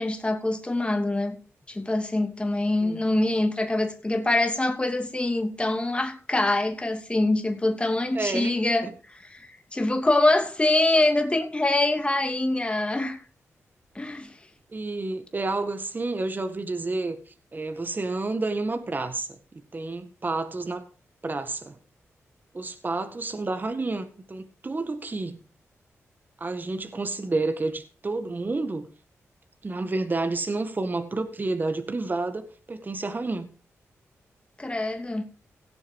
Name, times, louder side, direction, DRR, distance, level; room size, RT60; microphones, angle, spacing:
voice 1, 0.0-1.4 1.7-8.9 9.3-13.2 13.9-14.3 34.6-35.3, left 2 dB, 20° left, 2.8 m, -24 dB
voice 2, 8.1-8.6 8.8-8.9 14.7-19.4 19.7-20.9 21.2-21.8 22.5-25.4 26.4-28.9 29.6-33.5, right 3 dB, 35° right, 1.8 m, -30 dB
17.0 x 7.1 x 4.7 m
cardioid pair, 60°, 5 cm